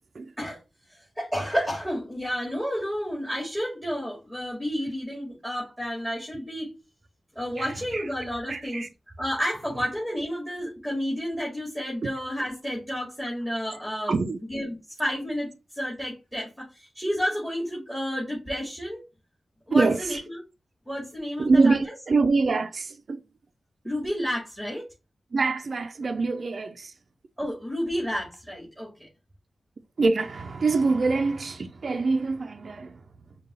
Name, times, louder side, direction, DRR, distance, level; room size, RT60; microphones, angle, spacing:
voice 1, 0.9-6.7 7.4-8.9 9.2-14.2 14.5-19.0 19.7-20.4 20.9-21.9 23.8-24.9 27.4-29.1, equal, ahead, 2.0 m, -31 dB
voice 2, 7.6-8.0 8.5-8.9 14.1-14.4 19.7-20.2 21.4-23.2 25.3-26.9 30.0-33.0, right 3 dB, 60° right, 0.4 m, -24 dB
5.3 x 2.3 x 3.9 m
cardioid pair, 70°, 0 cm